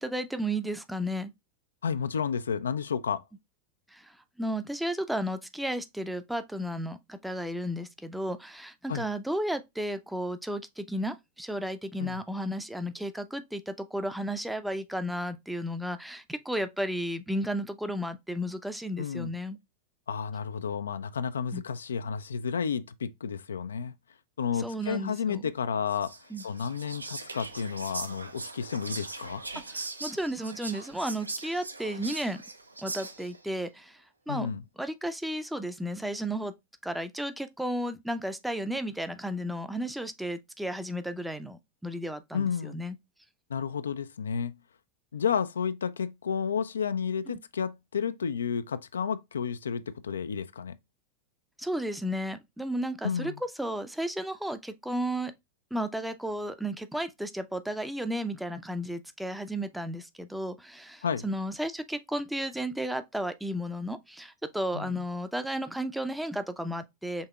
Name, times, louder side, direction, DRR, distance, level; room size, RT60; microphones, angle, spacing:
voice 1, 0.0-1.3 3.9-19.6 21.5-21.6 24.5-25.5 26.3-26.4 29.7-32.4 32.8-34.5 34.8-36.5 36.8-43.0 47.3-47.4 51.6-55.3 55.7-67.3, equal, 5° right, 0.5 m, -33 dB
voice 2, 1.8-3.2 8.9-9.0 12.0-12.2 19.0-19.3 20.1-23.9 24.4-26.1 26.4-29.4 34.3-34.6 42.3-42.8 43.5-44.5 45.1-50.8 53.0-53.4 61.0-61.3 64.7-65.0, left 6 dB, 70° left, 0.3 m, -31 dB
Whispering, 25.9-33.4, right 3 dB, 80° right, 0.6 m, -40 dB
5.4 x 3.5 x 2.3 m
figure-of-eight pair, 90°, 0 cm